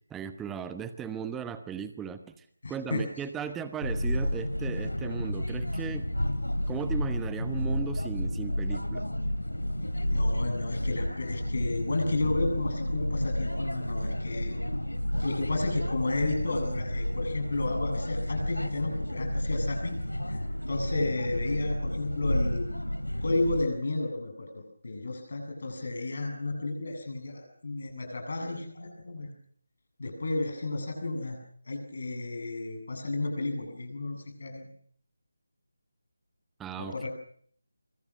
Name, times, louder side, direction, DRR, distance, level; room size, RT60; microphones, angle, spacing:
voice 1, 0.1-6.1 6.7-9.0 36.6-37.1, right 7 dB, 5° right, 11 dB, 1.1 m, -37 dB
voice 2, 2.6-3.0 10.1-14.6 15.2-20.0 20.3-22.7 23.2-29.3 30.0-31.4 31.6-34.7 36.8-37.1, left 2 dB, 50° left, 4 dB, 7.9 m, -32 dB
sound 1, 3.8-23.7, equal, 80° left, 2.9 m, -31 dB
24.5 x 24.5 x 6.3 m, 0.62 s
figure-of-eight pair, 155°, 0 cm